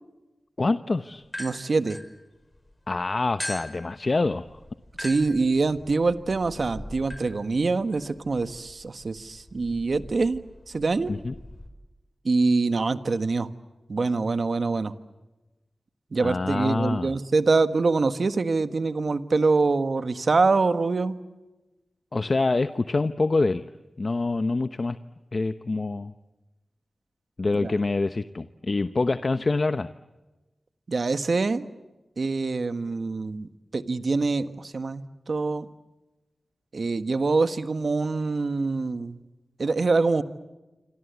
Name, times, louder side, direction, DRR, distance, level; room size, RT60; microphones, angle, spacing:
voice 1, 0.6-1.2 2.9-4.6 11.1-11.3 16.2-17.1 22.1-23.6 24.0-25.0 25.3-26.1 27.4-29.9, left 3 dB, 55° left, 11 dB, 0.9 m, -26 dB
sound 1, 1.2-2.7 3.4-11.7, left 1 dB, 25° left, 5.7 m, -42 dB
voice 2, 1.4-2.0 5.0-11.1 12.2-13.5 13.9-14.9 16.1-21.2 27.6-27.7 30.9-31.6 32.2-35.7 36.7-39.2 39.6-40.2, right 3 dB, 65° right, 10 dB, 1.5 m, -25 dB
27.0 x 26.5 x 8.2 m, 1.1 s
cardioid pair, 45°, 0 cm